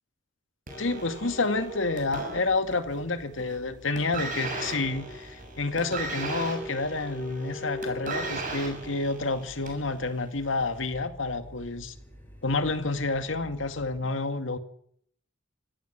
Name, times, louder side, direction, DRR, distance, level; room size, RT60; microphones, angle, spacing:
sound 1, 0.7-14.0, equal, 10° left, 6.3 m, -43 dB
sound 2, 0.7-3.0 3.3-3.7 3.9-9.9 10.7-10.8, right 3 dB, 45° right, 7.4 m, -36 dB
voice 1, 0.8-11.9 12.4-14.6, left 3 dB, 75° left, 2.1 m, -29 dB
25.0 x 16.0 x 8.1 m
head